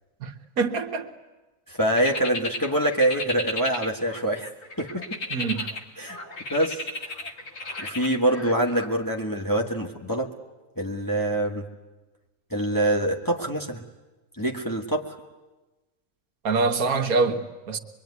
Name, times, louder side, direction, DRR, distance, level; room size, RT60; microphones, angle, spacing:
voice 1, 0.2-1.1 5.3-5.7 16.4-17.8, right 4 dB, 80° right, 1.7 m, -25 dB
voice 2, 1.7-4.5 4.8-5.2 6.0-6.2 6.5-6.8 7.8-10.3 10.8-11.6 12.5-13.8 14.4-15.2, right 1 dB, 15° left, 1.5 m, -25 dB
sound 1, 2.0-4.3 4.6-8.9, left 2 dB, 50° left, 1.8 m, -34 dB
23.5 x 23.0 x 9.6 m
omnidirectional pair, 1.5 m